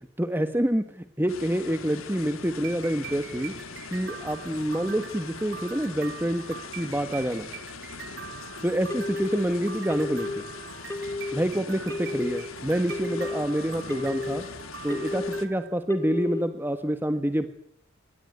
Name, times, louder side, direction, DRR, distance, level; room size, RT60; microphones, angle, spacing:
voice 1, 0.2-3.5 3.9-6.4 6.8-7.5 8.6-10.4 11.3-14.4 14.8-17.5, equal, 10° right, 9 dB, 1.4 m, -27 dB
sound 1, 1.3-15.5, left 4 dB, 90° left, 2.8 m, -42 dB
sound 2, 2.5-15.7, right 9 dB, 60° right, 4.0 m, -44 dB
Telephone, 8.9-9.4 9.9-10.4 10.9-11.4 11.9-12.4 12.9-13.4 13.9-14.4 14.9-15.4 15.9-16.4, left 2 dB, 15° left, 2.5 m, -32 dB
27.0 x 22.5 x 9.5 m, 0.69 s
head